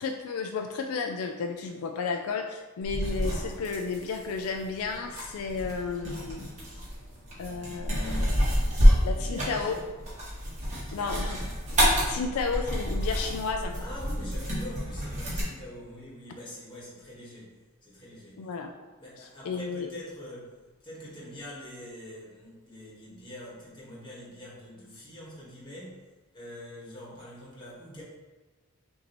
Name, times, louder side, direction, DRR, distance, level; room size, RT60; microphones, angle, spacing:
voice 1, 0.0-6.5 7.4-8.7 9.0-9.8 10.9-11.4 12.1-13.8 18.4-18.7 19.2-19.9, left 4 dB, 75° left, 4 dB, 0.3 m, -33 dB
sound 1, 2.8-15.4, equal, 35° right, 1.3 m, -28 dB
voice 2, 9.1-9.8 10.9-11.5 12.0-12.2 13.8-17.5 17.8-18.5 19.0-20.5 20.8-28.0, left 1 dB, 20° left, -6 dB, 1.4 m, -44 dB
5.8 x 2.7 x 3.0 m, 1.2 s
head